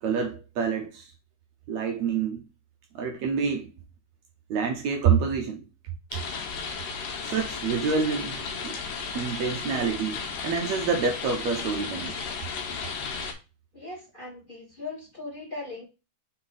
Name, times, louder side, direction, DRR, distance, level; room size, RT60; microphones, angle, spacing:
voice 1, 0.0-1.1 1.7-2.4 3.0-3.7 4.5-5.6 6.1-6.2 7.2-8.8 9.2-12.2, right 6 dB, 75° right, 1.6 m, -27 dB
sound 1, 6.1-13.3, left 5 dB, 75° left, 2.9 m, -34 dB
voice 2, 13.7-15.8, left 3 dB, 15° left, 1.9 m, -39 dB
6.1 x 4.2 x 3.9 m
omnidirectional pair, 4.0 m